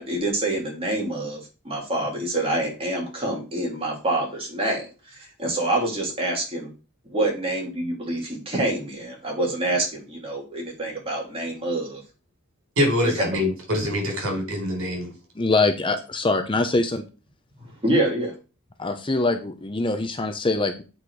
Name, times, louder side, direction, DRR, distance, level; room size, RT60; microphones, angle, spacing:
voice 1, 0.0-6.7 7.1-12.0 13.0-13.3 17.8-18.3, right 1 dB, 25° right, -1 dB, 2.9 m, -26 dB
voice 2, 12.8-15.1, left 1 dB, 60° right, 2 dB, 4.2 m, -24 dB
voice 3, 15.4-17.0 18.8-20.8, left 2 dB, 25° left, 7 dB, 0.7 m, -23 dB
8.7 x 4.4 x 4.8 m, 0.32 s
head